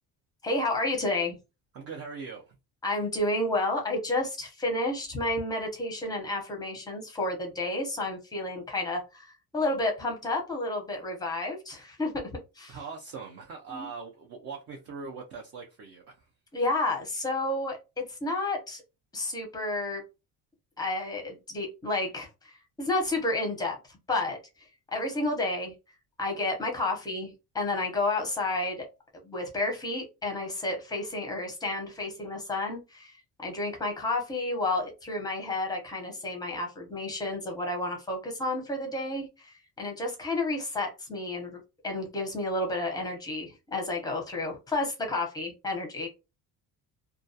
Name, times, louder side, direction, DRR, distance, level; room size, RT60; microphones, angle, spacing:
voice 1, 0.4-1.4 2.8-12.8 13.7-13.9 16.5-18.8 19.1-20.0 20.8-24.4 24.9-25.7 26.2-28.9 29.2-41.6 41.8-46.1, left 2 dB, 10° left, 0.6 m, -31 dB
voice 2, 1.7-2.6 12.7-16.3, right 5 dB, 40° right, 0.5 m, -41 dB
2.3 x 2.2 x 2.6 m
cardioid pair, 160°, 37 cm